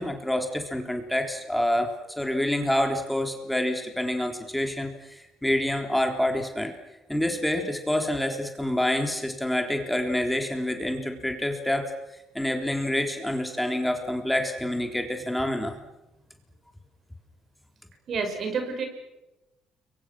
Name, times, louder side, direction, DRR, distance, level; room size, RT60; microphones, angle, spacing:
voice 1, 0.0-6.7 7.1-11.9 12.3-15.8, left 1 dB, 5° left, 4 dB, 3.7 m, -27 dB
voice 2, 18.1-18.9, right 5 dB, 55° right, 5 dB, 6.1 m, -29 dB
30.0 x 23.5 x 6.2 m, 0.99 s
supercardioid pair, 70°, 0 cm